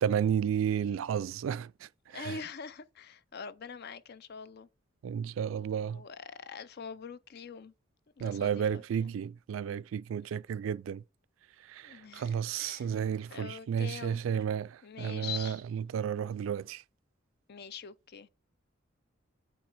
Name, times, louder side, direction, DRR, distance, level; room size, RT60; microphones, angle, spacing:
voice 1, 0.0-2.4 5.0-6.0 8.2-11.0 11.7-16.8, right 8 dB, 75° right, 0.3 m, -32 dB
voice 2, 0.6-1.0 2.1-4.7 5.9-7.7 8.2-9.2 11.8-12.9 13.3-14.2 14.8-15.6 17.5-18.3, left 6 dB, 55° left, 0.5 m, -44 dB
8.8 x 3.2 x 4.8 m
head